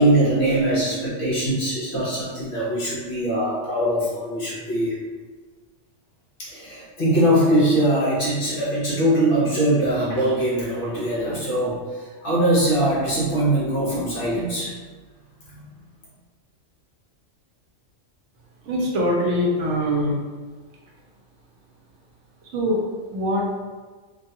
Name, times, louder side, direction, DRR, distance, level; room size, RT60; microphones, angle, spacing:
voice 1, 0.0-4.9 6.4-11.8 12.2-14.7 15.5-15.6, right 1 dB, 50° left, -7 dB, 0.8 m, -22 dB
voice 2, 18.7-20.2 22.5-22.8 23.1-23.6, equal, 70° right, -3 dB, 0.9 m, -22 dB
2.5 x 2.3 x 2.7 m, 1.4 s
omnidirectional pair, 1.3 m